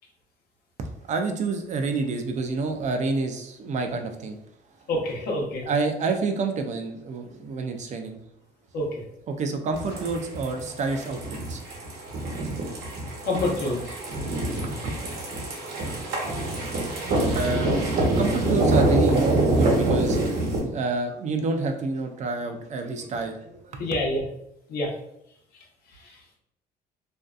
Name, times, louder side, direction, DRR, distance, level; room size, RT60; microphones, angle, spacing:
voice 1, 0.8-4.4 5.6-8.2 9.3-11.6 14.0-14.1 14.5-14.9 17.4-17.7 18.1-23.9, right 3 dB, 45° right, 5 dB, 0.4 m, -28 dB
voice 2, 4.9-5.6 8.7-8.9 13.2-13.9 23.8-24.2 24.7-24.9, left 1 dB, 65° left, -2 dB, 0.8 m, -26 dB
sound 1, 9.7-20.6, right 2 dB, 75° right, 0.9 m, -25 dB
2.6 x 2.3 x 2.3 m, 0.77 s
cardioid pair, 110°, 17 cm